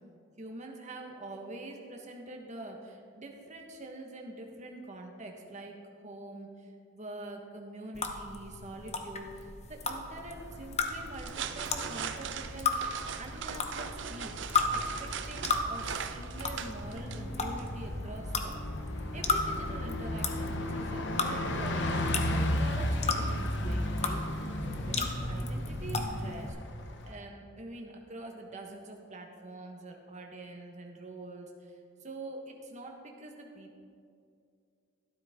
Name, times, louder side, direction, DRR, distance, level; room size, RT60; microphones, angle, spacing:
voice 1, 0.4-5.8 6.0-14.4 14.7-18.6 19.1-22.0 22.3-26.5 27.0-33.8, right 2 dB, 40° right, 1 dB, 1.4 m, -45 dB
sound 1, 7.9-26.5, left 3 dB, 35° left, 0.9 m, -35 dB
Bus, 10.1-27.2, left 1 dB, 65° left, 0.9 m, -36 dB
sound 2, 11.0-17.9, right 7 dB, 70° right, 0.6 m, -40 dB
13.0 x 12.0 x 3.7 m, 2.4 s
head